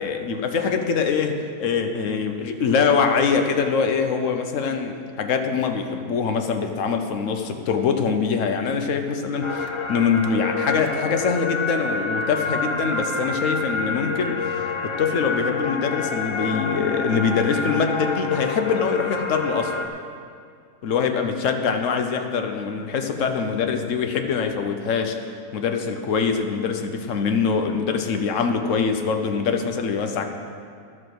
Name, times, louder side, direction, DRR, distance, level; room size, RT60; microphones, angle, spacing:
voice 1, 0.0-14.4 14.8-19.9 20.8-25.2 25.5-30.3, left 5 dB, 60° left, 6 dB, 1.1 m, -23 dB
sound 1, 9.4-19.9, left 4 dB, 45° left, 0.3 m, -28 dB
11.5 x 7.8 x 6.1 m, 2.3 s
omnidirectional pair, 1.6 m